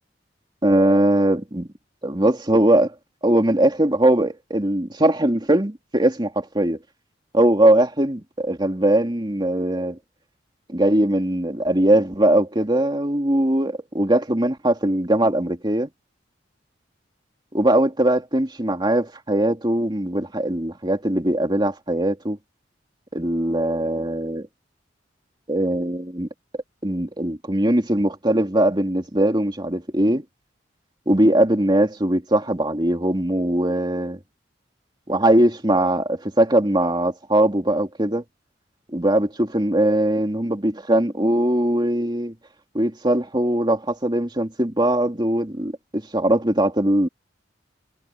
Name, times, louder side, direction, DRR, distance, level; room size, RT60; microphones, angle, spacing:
voice 1, 0.6-1.7 2.0-2.9 3.2-6.8 7.3-10.0 10.7-15.9 17.5-22.4 23.1-24.5 25.5-26.3 26.8-30.2 31.1-34.2 35.1-38.2 38.9-42.3 42.7-47.1, right 1 dB, 25° right, 2.9 m, -20 dB
head